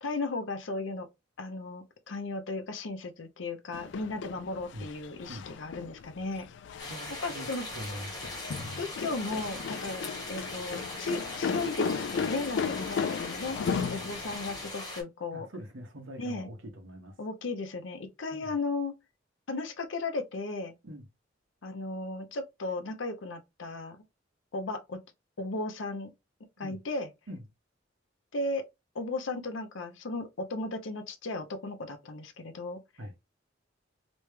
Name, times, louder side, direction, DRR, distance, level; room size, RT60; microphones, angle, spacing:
voice 1, 0.0-1.1 1.4-6.5 7.2-7.7 8.8-13.6 13.9-15.5 16.2-16.5 17.2-18.9 19.5-20.7 21.6-24.0 24.5-25.0 25.4-26.1 26.6-27.1 28.3-28.6 28.9-32.8, left 3 dB, 80° left, 0.7 m, -35 dB
sound 1, 3.7-14.7, left 6 dB, 65° left, 0.3 m, -36 dB
sound 2, 6.8-15.0, left 2 dB, 20° left, 1.2 m, -40 dB
voice 2, 6.8-7.5 7.7-8.8 15.3-17.1 18.3-18.5 20.8-21.0 26.6-26.8 27.3-27.4 33.0-33.1, equal, 85° right, 1.1 m, -43 dB
3.3 x 3.0 x 3.2 m
head